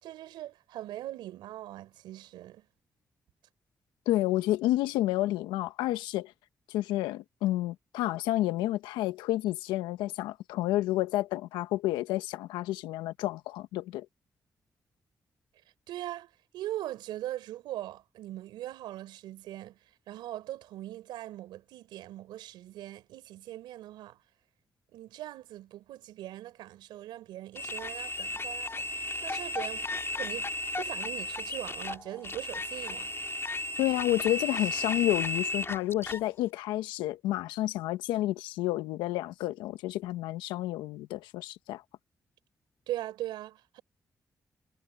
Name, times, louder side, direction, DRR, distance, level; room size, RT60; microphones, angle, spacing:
voice 1, 0.0-2.7 15.9-19.8 20.1-24.2 24.9-28.9 29.2-29.9 30.2-30.5 30.8-33.1 42.9-43.8, right 14 dB, 85° right, 4.0 m, -40 dB
voice 2, 4.1-6.3 6.7-14.1 33.8-41.8, left 15 dB, 90° left, 1.2 m, -30 dB
sound 1, 27.5-36.2, left 2 dB, 35° left, 3.3 m, -34 dB
hypercardioid pair, 40°, 8 cm